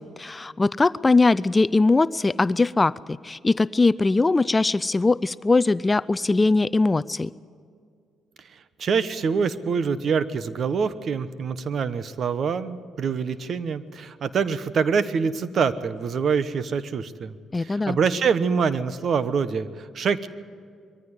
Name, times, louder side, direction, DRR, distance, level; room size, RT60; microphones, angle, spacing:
voice 1, 0.0-7.3 17.5-18.0, left 3 dB, 20° left, 16 dB, 0.4 m, -21 dB
voice 2, 8.8-20.3, right 6 dB, 55° right, 14 dB, 1.1 m, -25 dB
22.0 x 14.5 x 9.6 m, 2.2 s
cardioid pair, 90°, 0 cm